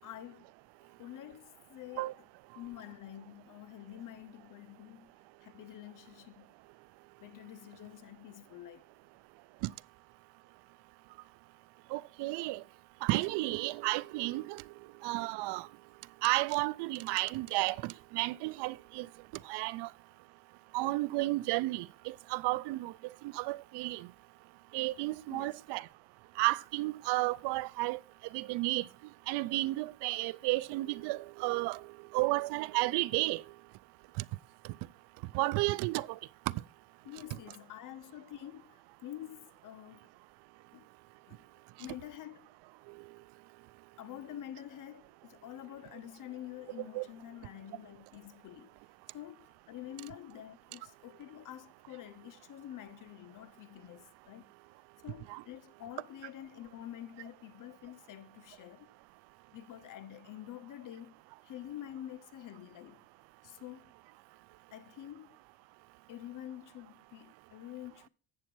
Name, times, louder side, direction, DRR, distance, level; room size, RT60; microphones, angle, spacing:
voice 1, 0.0-0.4 0.8-2.2 2.6-5.1 5.4-6.5 7.2-8.9 25.3-25.6 37.0-40.1 40.7-40.9 41.3-41.4 41.8-42.5 44.0-48.8 49.1-54.5 55.0-59.0 59.5-63.1 63.4-63.9 64.7-65.4 66.1-68.1, left 12 dB, 50° left, 0.7 m, -48 dB
voice 2, 11.9-12.6 13.0-14.6 15.0-15.7 16.2-19.1 19.5-19.9 20.7-22.9 23.3-24.1 24.7-25.8 26.4-28.0 28.3-28.8 29.3-31.8 32.1-33.4 35.3-36.1 46.9-47.1 55.3-55.4, right 20 dB, 80° right, 0.5 m, -32 dB
8.5 x 6.9 x 4.6 m
cardioid pair, 110°, 40 cm